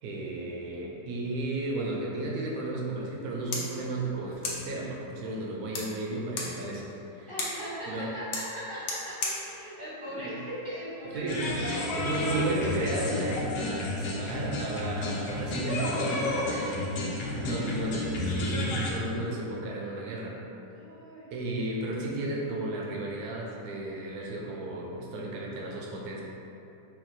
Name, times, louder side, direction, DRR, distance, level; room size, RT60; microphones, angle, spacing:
voice 1, 0.0-7.3 7.9-8.1 10.1-10.3 11.1-11.5 11.8-16.8 17.3-20.4 21.3-26.2, right 2 dB, 70° right, -2 dB, 1.1 m, -33 dB
sound 1, 3.1-11.1, left 3 dB, 65° left, 1.0 m, -39 dB
voice 2, 7.3-11.8 17.2-17.9 20.7-21.3, equal, 25° left, -12 dB, 0.8 m, -40 dB
sound 2, 11.3-18.9, left 2 dB, 90° left, 1.3 m, -31 dB
4.3 x 2.2 x 4.0 m, 2.9 s
omnidirectional pair, 1.8 m